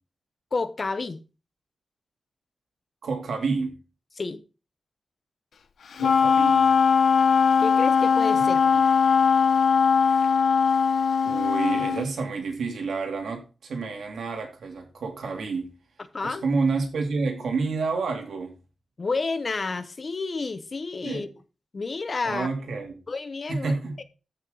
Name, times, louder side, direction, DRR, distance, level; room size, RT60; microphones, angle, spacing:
voice 1, 0.5-1.2 4.2-4.4 7.6-8.6 16.1-16.4 19.0-21.3 21.7-22.5 23.1-24.0, left 4 dB, 35° left, 0.8 m, -30 dB
voice 2, 3.0-3.8 5.9-6.7 11.2-15.7 16.2-18.5 21.0-21.3 22.2-22.9 23.5-24.0, right 4 dB, 85° right, 2.8 m, -29 dB
Wind instrument woodwind instrument, 6.0-12.1, left 6 dB, 75° left, 0.8 m, -20 dB
14.0 x 6.1 x 3.9 m
wide cardioid pair, 170°, 0 cm